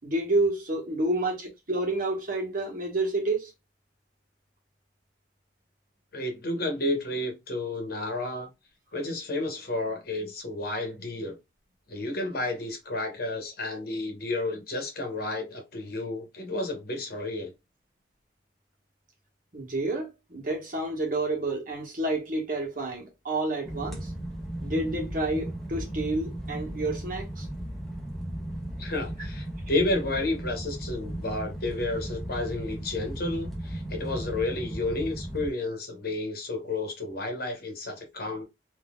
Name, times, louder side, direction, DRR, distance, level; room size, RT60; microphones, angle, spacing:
voice 1, 0.0-3.5 19.5-24.1 24.6-27.5, right 2 dB, 50° right, 1.3 m, -29 dB
voice 2, 6.1-8.5 8.9-11.4 11.9-17.5 28.8-38.4, left 2 dB, 55° left, 1.0 m, -31 dB
sound 1, 23.6-35.5, right 1 dB, ahead, 0.9 m, -36 dB
3.8 x 2.8 x 2.3 m
head